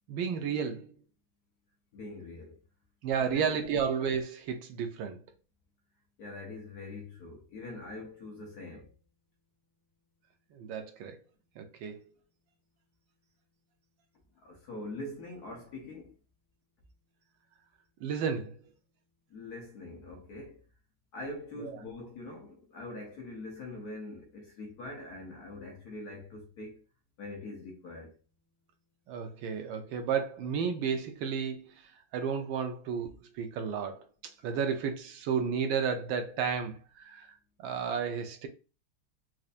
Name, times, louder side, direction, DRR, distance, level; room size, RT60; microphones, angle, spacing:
voice 1, 0.1-0.9 3.0-5.2 10.5-11.2 11.6-12.0 18.0-18.6 21.6-21.7 29.1-34.1 34.4-37.3 37.6-38.5, right 6 dB, 75° right, 1.3 m, -32 dB
voice 2, 1.9-2.6 3.2-3.7 6.2-8.9 14.3-16.1 19.3-20.6 21.1-26.8 27.2-28.2, left 2 dB, 60° left, 1.1 m, -43 dB
4.3 x 2.5 x 2.4 m
omnidirectional pair, 2.2 m